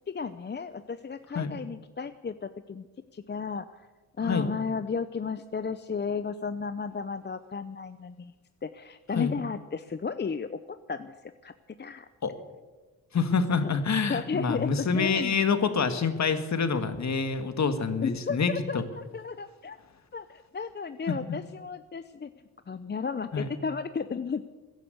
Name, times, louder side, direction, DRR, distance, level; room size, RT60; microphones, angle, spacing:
voice 1, 0.1-2.9 3.1-3.9 4.2-8.3 8.6-11.1 11.4-11.5 11.8-12.1 14.1-15.4 18.0-19.8 20.1-20.3 20.5-22.3 22.7-24.4, left 5 dB, 30° left, 11 dB, 0.7 m, -33 dB
voice 2, 13.1-18.8 21.1-21.2 23.3-23.5, left 5 dB, 45° left, 9 dB, 1.8 m, -27 dB
15.5 x 10.5 x 8.2 m, 1.3 s
supercardioid pair, 60°, 37 cm